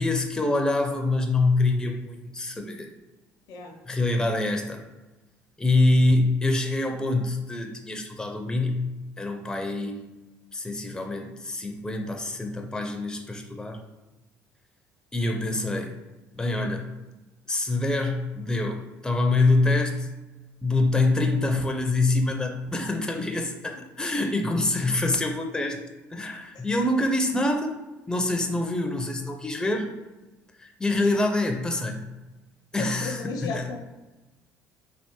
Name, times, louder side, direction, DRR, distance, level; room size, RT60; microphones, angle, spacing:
voice 1, 0.0-2.9 3.9-4.8 5.6-10.1 10.5-13.8 15.1-16.0 16.3-16.9 17.5-20.1 20.6-25.8 26.1-27.8 28.1-29.9 30.6-32.0 32.7-33.6, left 2 dB, 10° left, 4 dB, 0.4 m, -25 dB
voice 2, 32.8-33.8, left 4 dB, 70° left, 3 dB, 0.6 m, -35 dB
3.4 x 2.4 x 2.9 m, 1.1 s
supercardioid pair, 70°, 7 cm